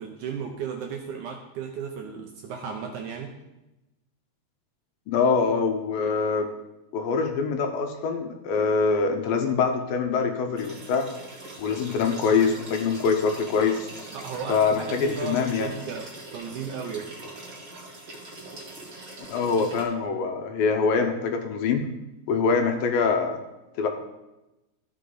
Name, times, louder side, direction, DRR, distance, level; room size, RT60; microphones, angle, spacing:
voice 1, 0.0-3.3 14.1-17.1, right 6 dB, 70° right, 1 dB, 2.0 m, -35 dB
voice 2, 5.1-6.5 6.9-11.1 11.6-13.9 14.5-15.7 19.3-21.9 22.3-23.4 23.8-23.9, left 5 dB, 75° left, 5 dB, 2.3 m, -24 dB
sound 1, 10.6-19.8, right 2 dB, 40° right, 1.3 m, -42 dB
14.0 x 5.4 x 3.8 m, 0.98 s
omnidirectional pair, 4.4 m